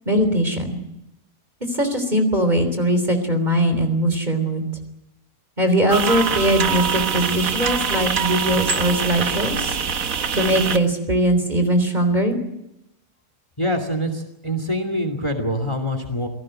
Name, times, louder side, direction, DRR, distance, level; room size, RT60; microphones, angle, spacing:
voice 1, 0.1-0.8 1.7-4.6 5.6-9.8 10.3-12.4, right 1 dB, 25° right, 7 dB, 3.6 m, -20 dB
sound 1, 5.9-10.8, right 6 dB, 55° right, 1.6 m, -24 dB
voice 2, 13.6-16.3, equal, 20° left, 8 dB, 2.5 m, -25 dB
27.0 x 18.0 x 7.7 m, 0.86 s
omnidirectional pair, 1.7 m